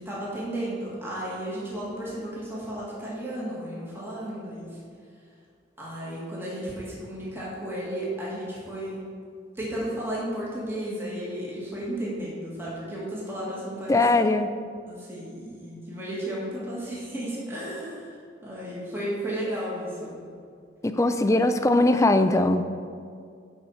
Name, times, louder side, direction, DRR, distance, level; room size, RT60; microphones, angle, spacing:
voice 1, 0.0-4.7 5.8-9.1 9.6-14.0 14.9-18.2 18.4-20.2, right 1 dB, 15° right, -7 dB, 1.9 m, -33 dB
voice 2, 13.9-14.5 20.8-22.7, left 2 dB, 15° left, 9 dB, 0.4 m, -21 dB
10.5 x 4.5 x 5.6 m, 2.2 s
head